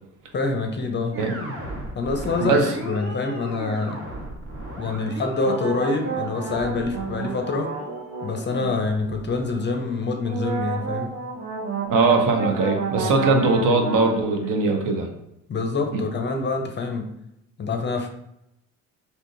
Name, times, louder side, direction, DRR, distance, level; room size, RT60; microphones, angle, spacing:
voice 1, 0.3-1.2 1.9-4.0 4.8-7.7 8.2-11.1 13.0-13.8 15.5-17.1 17.6-18.1, left 3 dB, 30° left, 4 dB, 0.6 m, -26 dB
sound 1, 1.1-10.4, right 1 dB, 35° right, 1.2 m, -37 dB
sound 2, 5.4-8.8 10.2-14.5, right 4 dB, 75° right, 1.1 m, -31 dB
voice 2, 11.9-15.1 15.9-16.0, right 3 dB, 55° right, 3 dB, 0.8 m, -20 dB
3.6 x 2.6 x 2.6 m, 0.80 s
hypercardioid pair, 65°, 38 cm